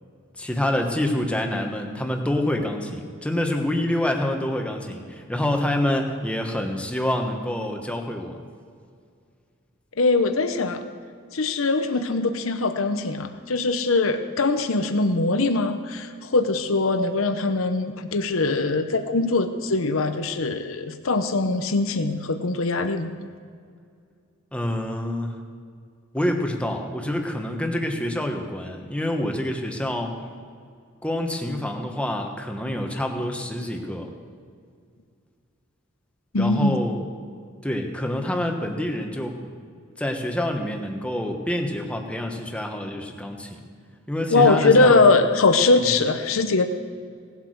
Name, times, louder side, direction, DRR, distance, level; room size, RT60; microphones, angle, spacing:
voice 1, 0.4-8.4 24.5-25.4 26.1-30.2 31.0-34.1 36.4-37.0 37.6-39.5 40.0-43.6 44.1-45.0, left 1 dB, 5° left, 3 dB, 1.2 m, -27 dB
voice 2, 10.0-10.8 11.3-23.1 36.3-36.8 44.3-46.7, left 3 dB, 75° left, 8 dB, 0.8 m, -21 dB
18.0 x 8.2 x 6.4 m, 2.2 s
head